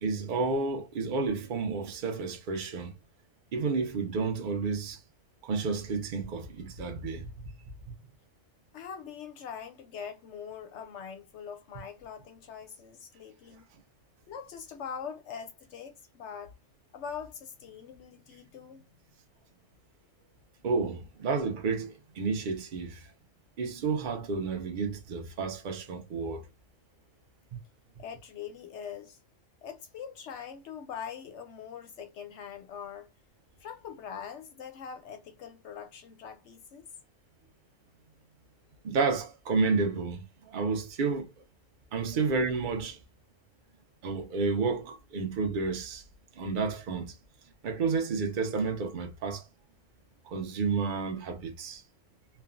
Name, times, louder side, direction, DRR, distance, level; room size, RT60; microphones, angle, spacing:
voice 1, 0.0-2.9 3.5-5.0 5.4-7.5 7.9-8.0 20.6-23.1 23.6-26.4 38.8-41.3 41.9-43.0 44.0-46.0 46.3-47.2 47.6-49.5 50.3-51.8, right 4 dB, 50° right, 0.7 m, -31 dB
voice 2, 8.7-13.7 14.3-16.5 16.9-18.8 28.0-29.2 29.6-33.1 33.6-36.9, left 7 dB, 65° left, 0.8 m, -43 dB
3.2 x 2.2 x 2.4 m
omnidirectional pair, 1.4 m